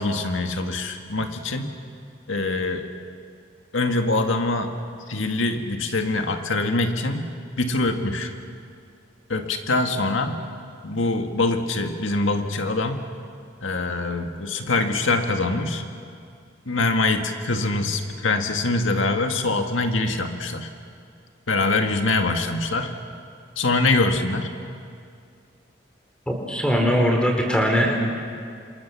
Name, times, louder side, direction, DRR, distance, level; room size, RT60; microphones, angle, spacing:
voice 1, 0.0-1.7 2.3-2.9 3.7-4.8 5.1-7.3 7.6-8.3 9.3-10.4 10.8-13.0 13.6-15.8 16.7-20.7 21.5-23.0 23.6-24.5, left 2 dB, 90° left, 5 dB, 1.9 m, -24 dB
voice 2, 26.3-27.9, equal, 5° left, 1 dB, 4.1 m, -21 dB
29.0 x 27.0 x 7.2 m, 2.3 s
head